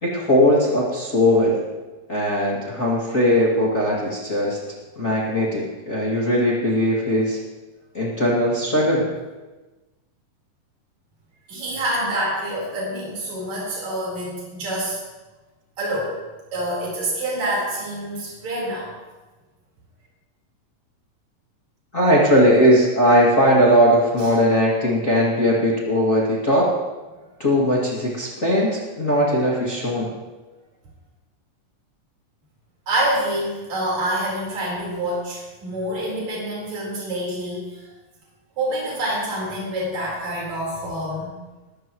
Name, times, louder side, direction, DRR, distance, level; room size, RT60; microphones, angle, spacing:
voice 1, 0.0-1.6 2.1-4.6 5.0-7.4 7.9-9.1 21.9-26.7 27.4-30.1, equal, 25° left, -5 dB, 2.3 m, -19 dB
voice 2, 11.5-15.0 15.8-16.2 16.5-18.9 24.2-24.3 27.7-27.9 32.9-37.9 38.6-41.4, right 1 dB, 50° right, -5 dB, 5.6 m, -27 dB
21.0 x 13.5 x 3.1 m, 1.2 s
omnidirectional pair, 4.0 m